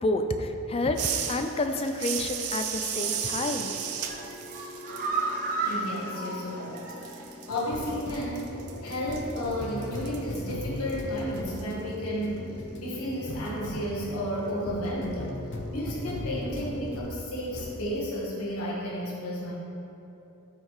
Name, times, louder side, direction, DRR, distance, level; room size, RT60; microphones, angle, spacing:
voice 1, 0.0-3.7, left 2 dB, 25° left, 6 dB, 0.4 m, -29 dB
sound 1, 0.9-6.5 6.8-11.6, right 8 dB, 80° right, 0.6 m, -35 dB
sound 2, 2.9-17.2 17.5-17.8, left 1 dB, 55° left, 0.7 m, -39 dB
sound 3, 3.1-3.5 3.9-7.3 7.6-7.7 8.1-8.2, right 3 dB, 40° right, 0.8 m, -33 dB
voice 2, 5.6-15.4 15.7-19.5, equal, 80° left, -5 dB, 1.3 m, -33 dB
12.0 x 4.6 x 3.2 m, 3.0 s
head